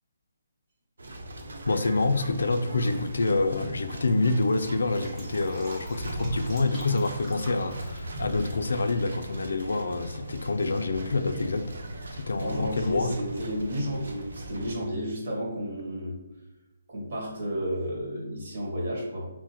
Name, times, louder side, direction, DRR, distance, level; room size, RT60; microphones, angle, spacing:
sound 1, 1.0-14.7, right 1 dB, 85° right, 0.8 m, -39 dB
voice 1, 1.7-11.7 12.1-13.1, left 3 dB, 80° left, 8 dB, 0.3 m, -27 dB
Fill (with liquid), 4.8-9.5 9.8-9.9, equal, 5° right, 0.7 m, -47 dB
voice 2, 12.4-16.2 16.9-19.3, equal, 40° right, -2 dB, 1.3 m, -32 dB
5.9 x 2.1 x 2.9 m, 1.0 s
hypercardioid pair, 175°, 0 cm